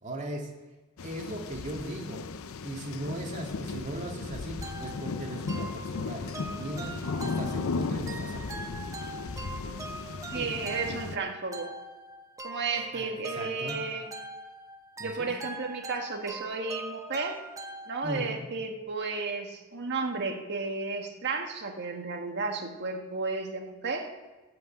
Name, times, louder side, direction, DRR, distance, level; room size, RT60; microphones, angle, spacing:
voice 1, 0.0-0.5 1.0-2.2 2.6-8.8 10.3-10.5 12.9-13.8 15.0-15.3 18.0-18.4, right 1 dB, 35° right, 0 dB, 2.3 m, -38 dB
sound 1, 1.0-11.2, left 4 dB, 65° left, 0.6 m, -36 dB
sound 2, 4.6-18.4, right 2 dB, 15° right, 1.0 m, -43 dB
voice 2, 10.3-11.7 12.4-14.1 15.0-17.4 17.9-24.1, right 4 dB, 50° right, 3 dB, 1.7 m, -33 dB
14.5 x 5.8 x 8.7 m, 1.2 s
head